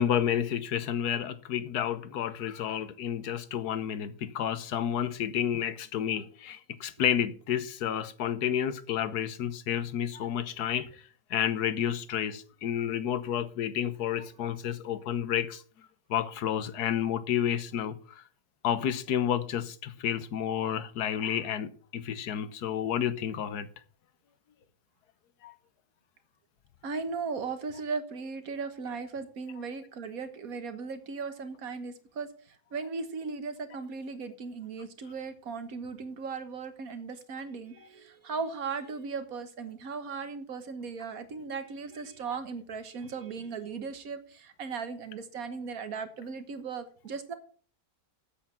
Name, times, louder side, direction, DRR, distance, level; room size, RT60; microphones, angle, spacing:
voice 1, 0.0-11.0 11.3-15.6 16.1-18.2 18.6-23.7 25.4-25.5, left 9 dB, 70° left, 1.4 m, -30 dB
voice 2, 26.8-47.3, right 5 dB, 60° right, 1.6 m, -37 dB
8.4 x 8.1 x 5.7 m
omnidirectional pair, 1.8 m